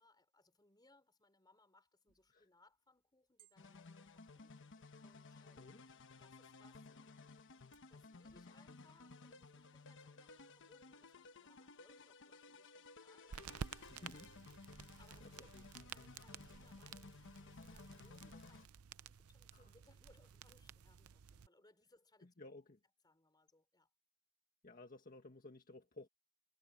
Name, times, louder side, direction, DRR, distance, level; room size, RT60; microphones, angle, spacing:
voice 1, 0.0-5.8 6.2-7.3 7.9-14.5 15.0-15.5 15.9-18.7 19.0-22.3 23.0-23.9, left 2 dB, 20° left, 5.2 m, -71 dB
sound 1, 2.1-8.6, right 9 dB, 60° right, 3.9 m, -77 dB
sound 2, 3.6-18.7, left 3 dB, 60° left, 1.1 m, -57 dB
voice 2, 5.3-5.8 13.9-14.3 14.8-15.6 19.5-19.7 22.2-22.8 24.6-26.1, left 2 dB, 40° left, 1.7 m, -57 dB
sound 3, 13.3-21.5, right 7 dB, 85° right, 0.6 m, -53 dB
head